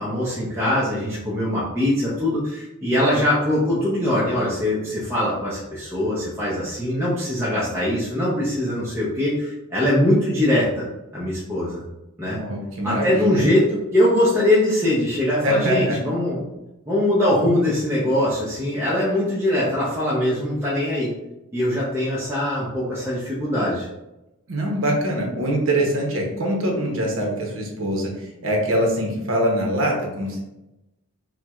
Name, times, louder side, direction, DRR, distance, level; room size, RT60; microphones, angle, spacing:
voice 1, 0.0-10.9 11.1-11.8 12.2-12.4 12.8-16.5 16.9-21.1 21.5-23.9, left 1 dB, 10° right, -8 dB, 0.5 m, -22 dB
voice 2, 12.4-13.4 15.4-16.0 24.5-30.4, right 1 dB, 60° right, 0 dB, 0.8 m, -23 dB
4.4 x 2.1 x 2.3 m, 0.93 s
head